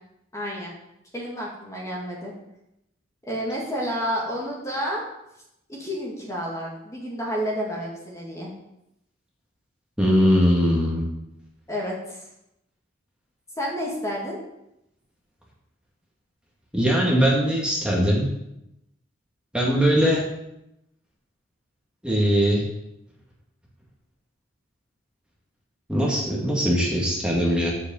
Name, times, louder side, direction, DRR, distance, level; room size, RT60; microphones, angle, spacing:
voice 1, 0.3-0.7 1.1-2.3 3.2-5.0 5.7-8.5 11.7-12.2 13.6-14.4, equal, 15° left, -4 dB, 2.1 m, -30 dB
voice 2, 10.0-11.1 16.7-18.3 19.5-20.2 22.0-22.6 25.9-27.7, equal, 5° right, -4 dB, 2.1 m, -20 dB
7.5 x 6.7 x 7.8 m, 0.85 s
head